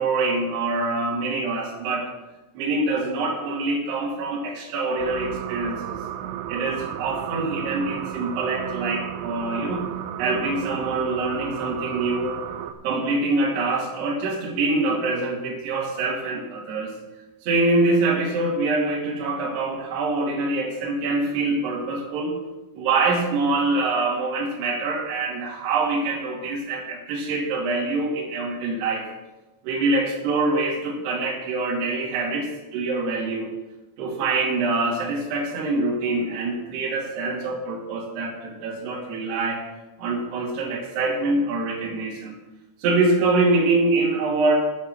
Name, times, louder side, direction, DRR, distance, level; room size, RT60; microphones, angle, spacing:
voice 1, 0.0-2.1 2.5-6.0 6.5-9.9 10.2-12.4 12.8-16.9 17.4-22.4 22.8-29.0 29.6-33.5 34.0-39.6 40.0-42.4 42.8-44.5, right 3 dB, 60° right, -4 dB, 4.1 m, -25 dB
sound 1, 5.0-12.7, right 10 dB, 80° right, 2.9 m, -33 dB
10.5 x 8.2 x 6.0 m, 1.0 s
omnidirectional pair, 5.6 m